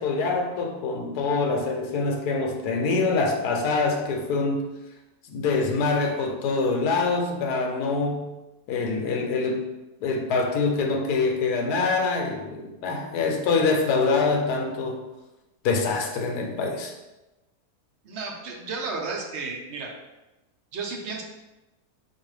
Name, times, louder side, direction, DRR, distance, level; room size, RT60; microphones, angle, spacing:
voice 1, 0.0-4.6 5.3-8.3 8.7-9.7 10.0-15.0 15.6-16.9, left 4 dB, 80° left, 2 dB, 1.2 m, -25 dB
voice 2, 18.0-19.9 20.7-21.2, right 4 dB, 60° right, 0 dB, 0.7 m, -33 dB
4.5 x 2.5 x 3.2 m, 1.0 s
omnidirectional pair, 1.7 m